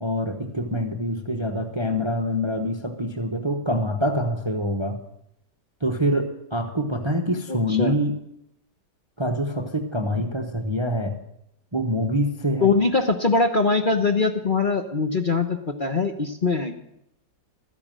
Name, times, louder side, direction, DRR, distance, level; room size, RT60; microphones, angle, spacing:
voice 1, 0.0-5.0 5.8-8.1 9.2-11.1 11.7-12.7, equal, 20° right, 5 dB, 0.9 m, -25 dB
voice 2, 7.5-8.0 12.6-16.7, left 4 dB, 35° left, 5 dB, 1.0 m, -22 dB
13.5 x 10.5 x 7.5 m, 0.78 s
omnidirectional pair, 1.8 m